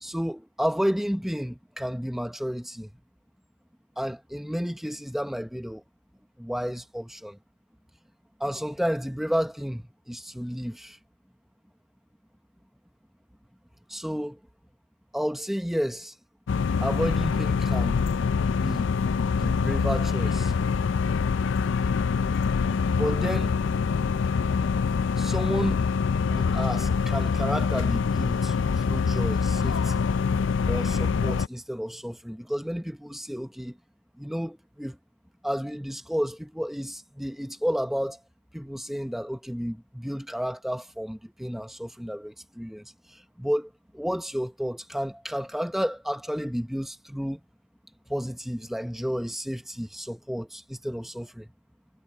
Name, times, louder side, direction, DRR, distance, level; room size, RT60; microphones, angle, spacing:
voice 1, 0.0-2.9 4.0-5.8 6.4-7.4 8.4-11.0 13.9-14.4 15.1-16.2 16.8-18.0 18.5-18.9 19.3-20.5 22.9-23.6 25.2-25.9 26.3-30.0 30.7-33.8 34.2-35.0 35.4-38.2 38.5-47.4 48.1-51.5, equal, ahead, 0.7 m, -31 dB
sound 1, 16.5-31.5, left 5 dB, 60° left, 0.4 m, -25 dB
head